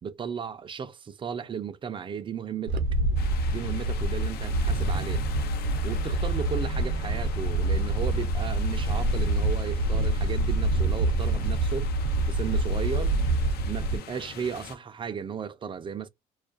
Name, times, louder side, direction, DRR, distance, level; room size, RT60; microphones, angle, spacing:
voice 1, 0.0-2.8 3.5-5.2 5.8-11.9 12.3-13.2 13.7-16.1, right 7 dB, 30° right, 0.4 m, -35 dB
Wind, 2.7-14.0, right 2 dB, 85° right, 0.6 m, -26 dB
sound 1, 3.2-14.8, left 8 dB, 65° left, 0.5 m, -42 dB
2.3 x 2.2 x 2.4 m
cardioid pair, 110°, 17 cm